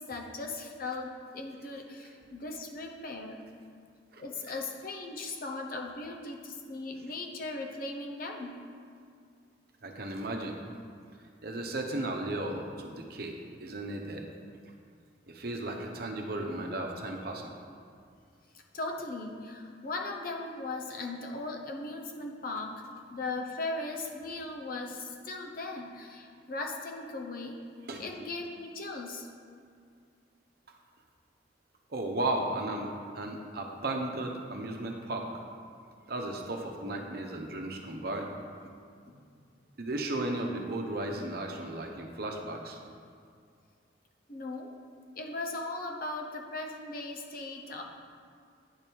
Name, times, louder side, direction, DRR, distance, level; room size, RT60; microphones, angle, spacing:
voice 1, 0.0-3.4 4.2-8.6 18.5-22.7 23.1-27.6 28.0-29.3 39.1-39.2 44.3-44.7 45.1-47.8, left 2 dB, 50° left, 1 dB, 0.9 m, -38 dB
voice 2, 9.8-10.6 11.4-14.3 15.3-17.5 27.9-28.1 31.9-35.3 36.1-38.4 39.8-42.8, right 2 dB, 55° right, 2 dB, 0.8 m, -35 dB
9.6 x 5.3 x 4.6 m, 2.2 s
head